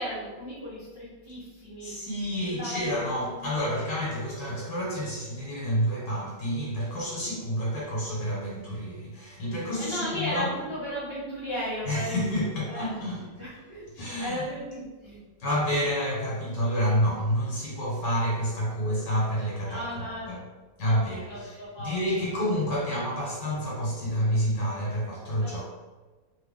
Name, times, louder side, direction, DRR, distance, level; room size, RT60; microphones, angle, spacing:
voice 1, 0.0-1.9 2.4-3.8 9.8-13.0 13.4-13.8 14.2-15.2 19.7-20.3 20.8-22.0 24.0-24.5 25.4-25.6, equal, 35° right, -10 dB, 0.4 m, -36 dB
voice 2, 1.8-10.5 11.9-13.2 13.9-14.4 15.4-20.4 20.8-25.6, equal, 65° left, -6 dB, 1.6 m, -29 dB
3.1 x 2.3 x 3.5 m, 1.3 s
omnidirectional pair, 2.0 m